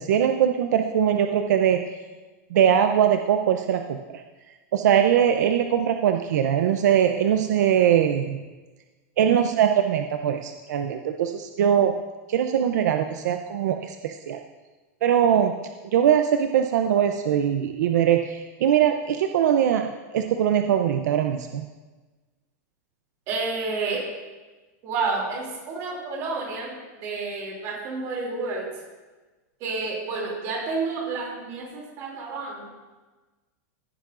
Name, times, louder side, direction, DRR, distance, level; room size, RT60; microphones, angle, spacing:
voice 1, 0.0-1.8 2.5-4.2 4.7-8.4 9.2-11.9 12.3-14.4 15.0-15.6 15.9-19.9 20.1-21.7, right 9 dB, 70° right, 5 dB, 0.6 m, -21 dB
voice 2, 23.3-24.0 24.8-28.7 29.6-32.7, right 4 dB, 30° right, -2 dB, 2.8 m, -30 dB
16.0 x 9.5 x 2.6 m, 1.2 s
supercardioid pair, 180°, 9 cm